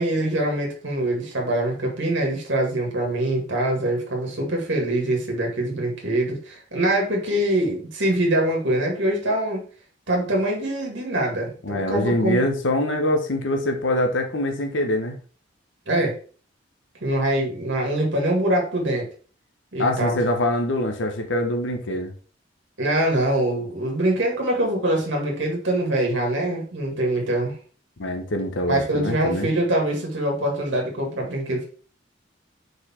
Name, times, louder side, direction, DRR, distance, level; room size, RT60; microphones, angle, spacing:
voice 1, 0.0-9.6 10.1-12.5 15.9-16.2 17.0-19.1 19.7-20.2 22.8-27.5 28.7-31.7, right 1 dB, 75° right, -1 dB, 1.9 m, -24 dB
voice 2, 11.6-15.2 19.8-22.1 28.0-29.5, left 1 dB, 85° left, 5 dB, 1.0 m, -24 dB
4.7 x 4.6 x 4.3 m, 0.40 s
head